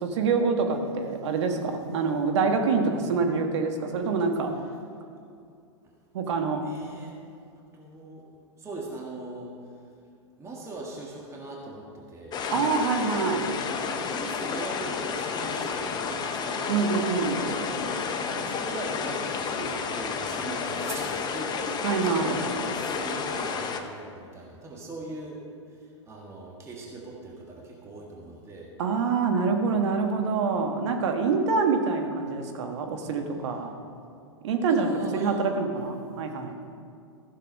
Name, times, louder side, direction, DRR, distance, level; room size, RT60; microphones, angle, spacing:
voice 1, 0.0-4.5 6.1-6.6 12.5-13.6 16.7-17.4 21.8-22.4 28.8-33.7 34.4-36.5, right 4 dB, 65° right, 4 dB, 1.6 m, -26 dB
voice 2, 6.6-7.2 7.7-8.2 8.6-9.5 10.4-12.8 13.8-16.9 17.3-25.4 25.8-28.7 34.2-35.4 36.0-36.7, right 2 dB, 15° right, -3 dB, 1.8 m, -40 dB
sound 1, 12.3-23.8, left 5 dB, 25° left, 0.9 m, -31 dB
14.5 x 6.7 x 5.3 m, 2.3 s
hypercardioid pair, 110°, 16 cm